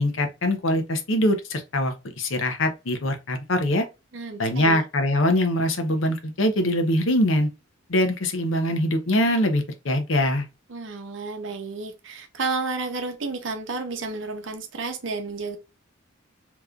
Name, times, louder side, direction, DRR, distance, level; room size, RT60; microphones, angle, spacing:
voice 1, 0.0-3.8 4.4-7.5 7.9-10.4, left 1 dB, 70° left, 0.8 m, -23 dB
voice 2, 4.1-4.8 10.7-15.6, right 3 dB, 65° right, 0.7 m, -31 dB
3.6 x 3.0 x 2.4 m
head